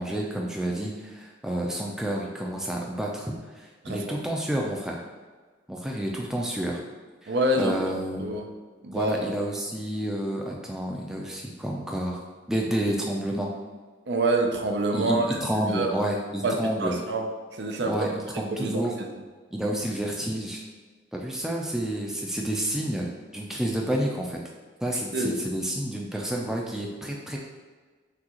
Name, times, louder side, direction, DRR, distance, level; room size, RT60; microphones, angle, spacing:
voice 1, 0.0-5.0 5.7-6.8 7.2-8.2 8.9-12.2 12.5-13.5 14.9-17.0 17.8-18.9 19.5-20.6 21.1-24.4 24.8-27.4, right 1 dB, 5° right, -1 dB, 0.4 m, -30 dB
voice 2, 7.3-7.8 8.2-8.5 8.8-9.2 14.1-15.4 15.7-15.9 16.4-16.5 16.8-17.3 17.5-17.9 18.3-18.8 19.6-19.7 24.9-25.4, right 2 dB, 65° right, 3 dB, 0.5 m, -26 dB
6.0 x 2.4 x 3.0 m, 1.4 s
head